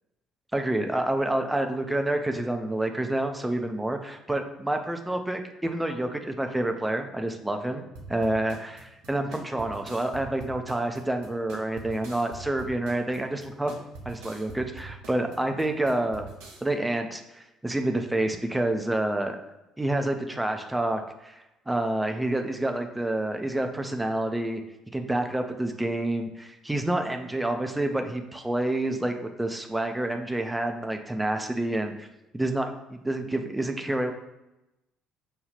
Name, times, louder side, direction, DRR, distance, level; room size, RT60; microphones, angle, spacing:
voice 1, 0.5-13.8 14.1-16.3 16.6-19.4 19.8-24.6 24.9-32.1 32.3-34.1, right 1 dB, 10° right, 5 dB, 0.5 m, -28 dB
sound 1, 8.0-16.6, right 3 dB, 65° right, 0.6 m, -44 dB
5.3 x 2.3 x 3.3 m, 0.94 s
figure-of-eight pair, 50°, 0 cm